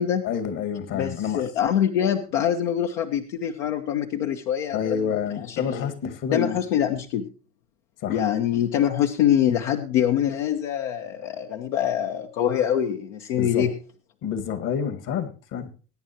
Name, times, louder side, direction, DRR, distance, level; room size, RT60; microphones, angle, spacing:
voice 1, 0.2-1.5 4.7-6.8 8.0-8.3 13.3-13.8 14.2-15.7, left 7 dB, 55° left, 9 dB, 1.9 m, -29 dB
voice 2, 0.9-5.0 5.5-5.9 6.3-7.2 8.1-13.7, left 10 dB, 80° left, 4 dB, 1.0 m, -24 dB
21.0 x 9.4 x 2.9 m, 0.36 s
hypercardioid pair, 85°, 37 cm